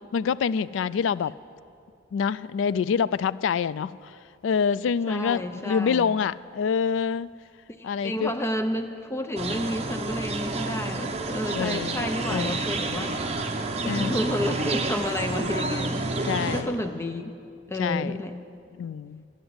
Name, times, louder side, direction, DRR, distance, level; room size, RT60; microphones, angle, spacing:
voice 1, 0.1-1.3 2.1-4.1 4.4-7.3 7.8-8.3 11.5-12.6 13.8-14.2 16.3-16.7 17.8-18.2 18.8-19.3, left 6 dB, 80° left, 0.3 m, -26 dB
voice 2, 5.1-6.1 7.7-13.3 13.8-17.2 17.7-18.4, left 1 dB, 15° left, 0.5 m, -31 dB
sound 1, 9.4-16.6, right 2 dB, 35° right, 0.9 m, -29 dB
12.5 x 8.0 x 9.5 m
head